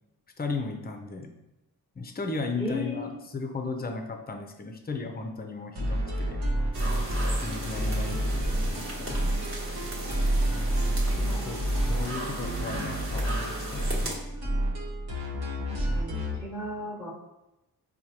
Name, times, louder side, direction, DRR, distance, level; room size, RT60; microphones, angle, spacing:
voice 1, 0.4-1.3 2.0-6.4 7.4-9.3 11.4-14.1, left 3 dB, 25° left, 5 dB, 0.5 m, -36 dB
voice 2, 2.6-3.1 11.1-11.6 15.7-17.1, left 1 dB, 10° right, -6 dB, 1.1 m, -36 dB
sound 1, 5.8-16.4, right 1 dB, 60° right, 1.0 m, -29 dB
sound 2, 6.7-14.2, right 1 dB, 30° right, 1.2 m, -37 dB
4.5 x 2.3 x 2.8 m, 0.95 s
cardioid pair, 65°, 42 cm